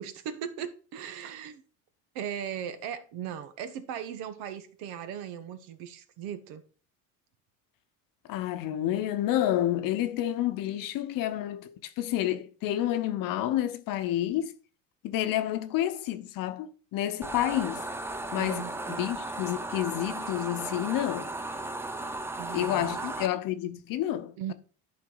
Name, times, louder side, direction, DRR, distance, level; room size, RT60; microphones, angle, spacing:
voice 1, 0.0-1.6 2.1-6.6 18.3-19.1 22.4-23.1 24.4-24.5, right 9 dB, 70° right, 1.2 m, -38 dB
voice 2, 8.3-14.5 15.0-17.8 18.3-21.3 22.5-24.5, left 12 dB, 55° left, 0.9 m, -29 dB
sound 1, 17.2-23.3, right 2 dB, 5° right, 0.6 m, -36 dB
11.0 x 4.7 x 3.9 m
supercardioid pair, 115°, 39 cm